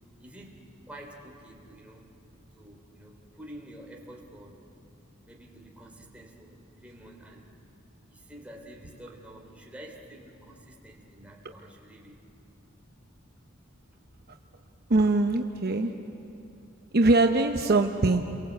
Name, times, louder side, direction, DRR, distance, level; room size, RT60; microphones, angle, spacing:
voice 1, 0.2-2.1 2.5-4.7 5.2-7.5 8.1-12.2, right 1 dB, 5° right, -1 dB, 3.4 m, -48 dB
voice 2, 14.9-15.9 16.9-18.2, right 2 dB, 50° right, 5 dB, 0.9 m, -22 dB
29.5 x 23.0 x 8.2 m, 2.8 s
head